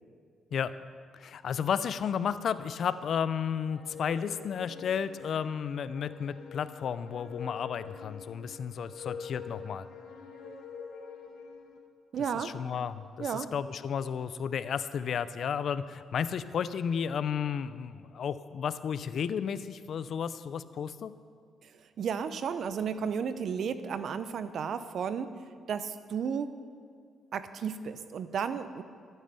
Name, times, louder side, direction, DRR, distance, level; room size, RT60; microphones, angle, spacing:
voice 1, 1.1-9.9 12.3-21.1, left 7 dB, 60° left, 14 dB, 0.5 m, -33 dB
sound 1, 3.6-11.8, left 6 dB, 85° left, 1.6 m, -45 dB
voice 2, 12.1-12.6 13.2-13.5 21.6-25.4 25.7-26.6 27.3-28.8, right 7 dB, 60° right, 12 dB, 0.7 m, -33 dB
13.5 x 9.2 x 6.8 m, 2.2 s
cardioid pair, 90°, 0 cm